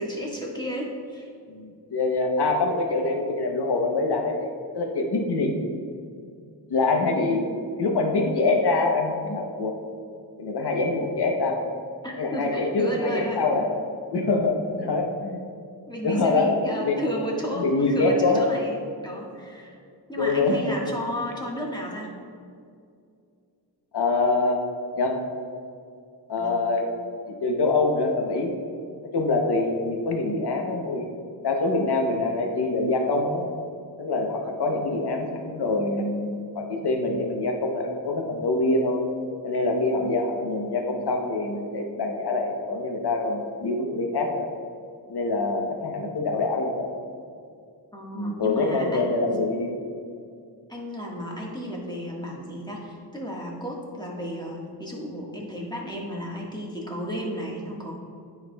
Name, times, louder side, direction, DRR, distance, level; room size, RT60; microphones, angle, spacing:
voice 1, 0.0-1.3 12.0-13.4 15.9-19.8 20.1-22.1 26.4-26.6 47.9-49.4 50.7-57.9, equal, 10° left, -3 dB, 1.5 m, -33 dB
voice 2, 1.5-4.5 4.7-5.5 6.7-7.5 7.8-9.8 10.4-11.6 12.2-13.7 14.1-15.4 16.0-17.1 17.5-18.5 20.2-20.8 23.9-24.7 25.0-25.2 26.3-26.9 27.4-28.5 29.1-31.1 31.4-33.5 34.0-39.0 39.4-44.5 45.1-46.9 48.1-49.8, left 3 dB, 65° left, 2 dB, 0.9 m, -25 dB
9.4 x 4.7 x 2.3 m, 2.4 s
cardioid pair, 45°, 43 cm